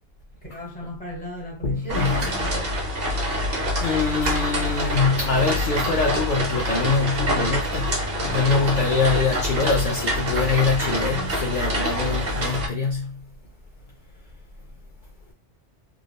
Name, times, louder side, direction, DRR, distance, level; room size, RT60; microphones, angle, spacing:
voice 1, 0.5-2.7, left 1 dB, 10° left, 1.0 m, -36 dB
voice 2, 1.6-2.3 3.8-13.2, left 4 dB, 60° left, 0.5 m, -24 dB
sound 1, 1.9-12.7, equal, 60° right, 1.0 m, -26 dB
3.4 x 2.3 x 2.2 m
omnidirectional pair, 1.2 m